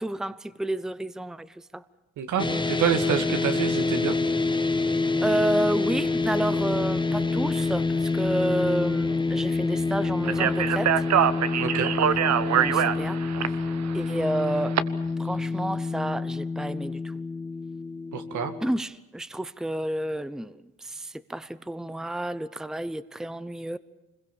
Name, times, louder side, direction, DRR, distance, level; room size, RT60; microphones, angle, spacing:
voice 1, 0.0-1.8 5.2-11.0 12.2-13.2 13.9-14.8 15.2-17.1 18.6-23.8, right 1 dB, ahead, 0.8 m, -30 dB
voice 2, 2.2-4.2 11.6-11.9 18.1-18.5, right 8 dB, 75° right, 2.3 m, -27 dB
sound 1, 2.4-18.7, left 3 dB, 15° left, 1.8 m, -27 dB
Speech, 10.2-14.8, right 9 dB, 60° right, 1.2 m, -24 dB
26.0 x 21.5 x 7.2 m
cardioid pair, 90°, 30 cm